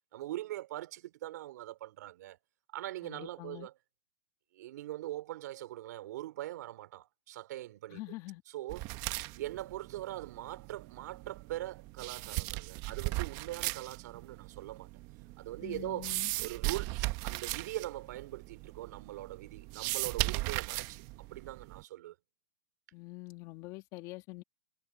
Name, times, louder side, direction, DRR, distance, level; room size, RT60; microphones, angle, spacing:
voice 1, 0.1-2.4 2.7-3.7 4.5-8.0 8.5-8.9 9.4-14.9 15.4-16.1 16.4-17.0 17.2-22.1, right 15 dB, 60° right, 2.9 m, -42 dB
voice 2, 3.0-3.7 7.9-8.4 15.6-16.3 22.9-24.4, left 20 dB, 35° left, 2.3 m, -45 dB
sound 1, 8.7-21.8, right 20 dB, 35° right, 1.0 m, -38 dB
hypercardioid pair, 150°, 10 cm